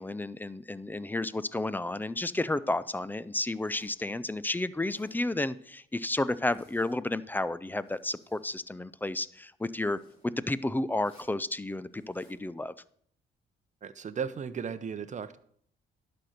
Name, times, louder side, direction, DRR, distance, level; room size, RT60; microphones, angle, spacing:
voice 1, 0.0-12.7, left 2 dB, 10° left, 17 dB, 0.4 m, -32 dB
Zipper (clothing), 3.5-4.0 4.7-5.2 6.3-7.0 7.6-8.6 9.7-10.3 11.0-11.4 11.9-12.4, left 1 dB, 25° left, 3.7 m, -61 dB
voice 2, 13.8-15.4, right 6 dB, 40° right, 12 dB, 0.7 m, -35 dB
11.5 x 4.4 x 6.5 m, 0.63 s
cardioid pair, 90°, 20 cm